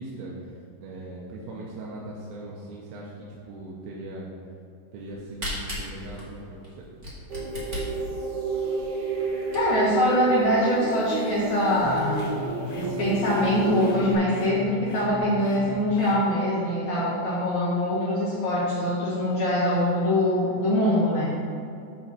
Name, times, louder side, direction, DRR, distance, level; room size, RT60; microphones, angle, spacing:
voice 1, 0.0-4.3 4.9-6.7, right 2 dB, 85° right, -4 dB, 3.0 m, -39 dB
Camera, 5.0-10.0 10.5-10.6 10.8-10.9 11.4-11.5 11.8-12.2, equal, 45° right, 0.6 m, -37 dB
sound 1, 7.3-14.1, right 4 dB, 65° right, 2.3 m, -30 dB
voice 2, 9.5-12.3 12.7-21.6, left 1 dB, 60° left, -8 dB, 2.0 m, -23 dB
sound 2, 11.8-16.2, left 2 dB, 80° left, 2.9 m, -37 dB
8.4 x 4.3 x 5.9 m, 2.5 s
omnidirectional pair, 4.9 m